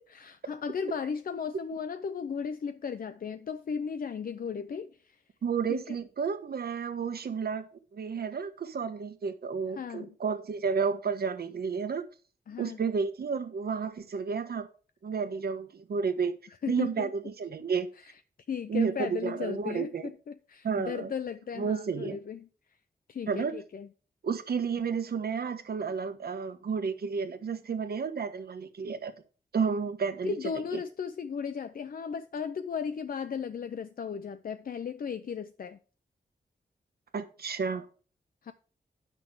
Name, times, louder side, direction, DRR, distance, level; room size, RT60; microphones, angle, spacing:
voice 1, 0.1-5.2 5.7-5.8 9.7-10.1 12.5-12.8 16.5-17.1 18.0-18.2 18.5-22.5 23.1-23.9 30.2-35.8 38.4-38.5, left 6 dB, 65° left, 0.6 m, -36 dB
voice 2, 5.4-7.6 7.9-12.0 12.6-14.7 15.0-16.3 16.7-17.9 18.7-20.1 20.6-21.1 21.6-22.2 23.3-23.6 24.2-29.1 29.5-30.4 30.7-30.8 37.1-37.9, right 5 dB, 75° right, 1.2 m, -31 dB
10.0 x 6.1 x 4.8 m
wide cardioid pair, 110°, 16 cm